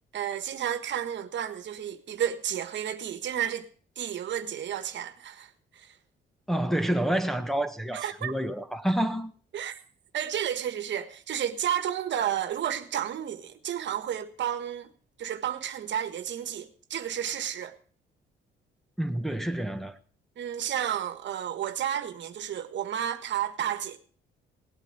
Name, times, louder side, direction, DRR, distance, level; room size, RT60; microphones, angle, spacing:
voice 1, 0.1-3.7 4.0-5.9 7.9-8.3 9.5-9.8 10.1-14.9 15.2-17.8 20.4-24.0, right 10 dB, 65° right, 1.5 m, -32 dB
voice 2, 6.5-9.3 19.0-20.0, right 1 dB, ahead, 1.3 m, -28 dB
18.0 x 8.4 x 6.8 m
cardioid pair, 90°, 20 cm